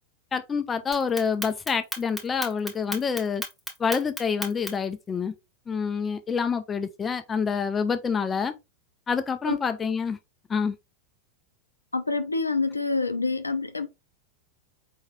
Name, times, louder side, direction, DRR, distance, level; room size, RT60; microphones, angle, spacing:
voice 1, 0.3-3.4 3.8-5.3 5.7-8.5 9.1-10.2 10.5-10.8, left 6 dB, 20° left, 0.4 m, -27 dB
Clock, 0.9-4.9, left 1 dB, 5° left, 1.1 m, -34 dB
voice 2, 11.9-13.9, left 3 dB, 80° left, 0.5 m, -27 dB
4.6 x 3.1 x 3.3 m
figure-of-eight pair, 90°, 0 cm